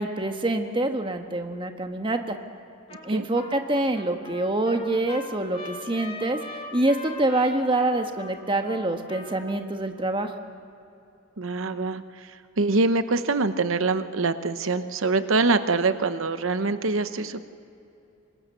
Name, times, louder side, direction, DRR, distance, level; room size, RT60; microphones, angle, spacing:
voice 1, 0.0-2.4 3.0-6.4 6.7-10.3, right 2 dB, 25° right, 5 dB, 1.4 m, -26 dB
Trumpet, 2.9-3.1 3.3-9.6, left 2 dB, 25° left, 2.3 m, -41 dB
voice 2, 11.4-12.0 12.6-17.5, right 3 dB, 70° right, 11 dB, 0.9 m, -24 dB
25.0 x 21.0 x 6.8 m, 2.8 s
head